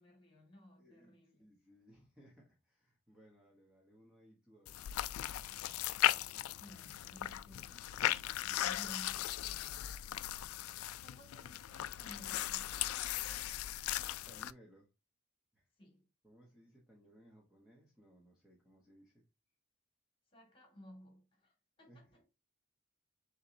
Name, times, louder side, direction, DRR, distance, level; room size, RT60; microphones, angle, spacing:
voice 1, 0.0-1.5 6.1-7.9 8.4-10.0 10.3-12.9 15.8-16.1 20.3-22.3, equal, 25° left, 1.9 m, -57 dB
voice 2, 0.8-1.1 1.4-5.1 14.2-14.9 15.5-15.7 16.2-19.2 21.9-22.0, equal, 5° right, 1.0 m, -63 dB
sound 1, 4.7-14.5, left 13 dB, 90° left, 0.3 m, -37 dB
6.0 x 3.1 x 2.6 m
head